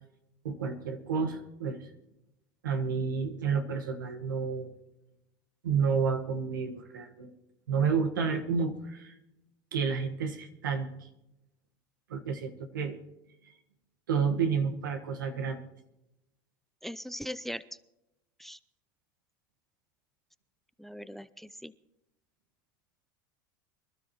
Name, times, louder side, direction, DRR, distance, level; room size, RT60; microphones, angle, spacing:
voice 1, 0.4-1.9 2.6-4.7 5.6-7.3 7.7-9.1 9.7-10.9 12.1-13.0 13.4-13.5 14.1-15.6, right 5 dB, 90° right, 6 dB, 1.4 m, -30 dB
voice 2, 16.8-17.6 18.4-18.6 20.8-21.7, equal, ahead, 18 dB, 0.4 m, -40 dB
24.0 x 12.5 x 3.0 m, 0.90 s
hypercardioid pair, 95°, 11 cm